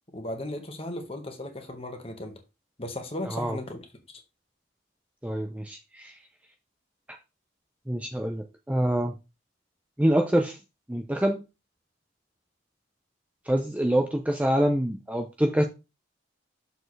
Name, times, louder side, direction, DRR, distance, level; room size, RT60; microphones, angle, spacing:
voice 1, 0.1-2.4 2.8-3.9, left 1 dB, 30° left, 1.4 m, -36 dB
voice 2, 3.2-3.6 5.2-6.1 7.9-9.1 10.0-10.6 10.9-11.4 13.5-15.6, right 1 dB, 5° right, 0.6 m, -25 dB
6.8 x 6.4 x 3.3 m
head